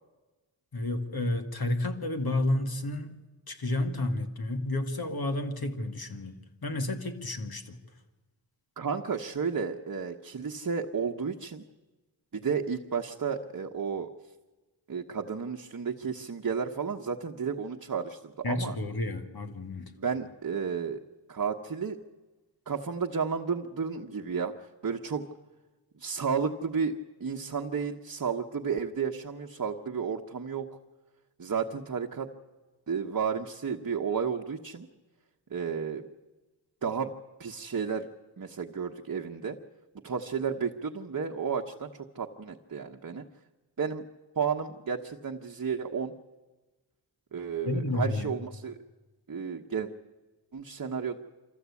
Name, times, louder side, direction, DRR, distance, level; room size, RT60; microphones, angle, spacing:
voice 1, 0.7-3.1 3.5-6.3 6.6-7.8 18.4-19.9 47.7-48.3, left 2 dB, 55° left, 6 dB, 2.2 m, -31 dB
voice 2, 8.8-11.6 12.3-14.1 14.9-18.8 20.0-21.0 21.3-22.0 22.7-25.3 26.0-30.7 31.4-32.3 32.9-34.9 35.5-36.1 36.8-37.1 37.4-38.1 38.4-39.6 40.0-43.2 43.8-44.0 44.3-46.1 47.3-48.8 49.3-49.9 50.5-51.2, right 6 dB, 45° right, 2 dB, 1.2 m, -32 dB
25.0 x 14.5 x 8.4 m, 1.2 s
cardioid pair, 55°, 44 cm